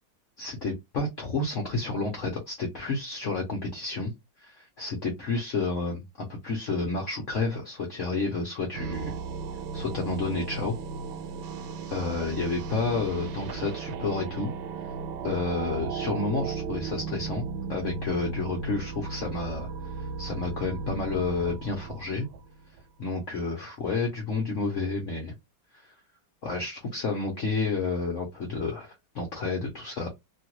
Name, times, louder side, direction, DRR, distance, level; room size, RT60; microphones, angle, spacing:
voice 1, 0.4-4.1 4.4-9.1 9.7-10.7 11.9-14.5 15.2-17.4 17.7-22.3 23.0-25.3 25.8-25.9 26.4-30.1, left 3 dB, 55° left, 0 dB, 0.9 m, -30 dB
sound 1, 8.7-22.8, right 4 dB, 70° right, 1.2 m, -35 dB
3.1 x 2.4 x 2.9 m, 0.19 s
omnidirectional pair, 2.0 m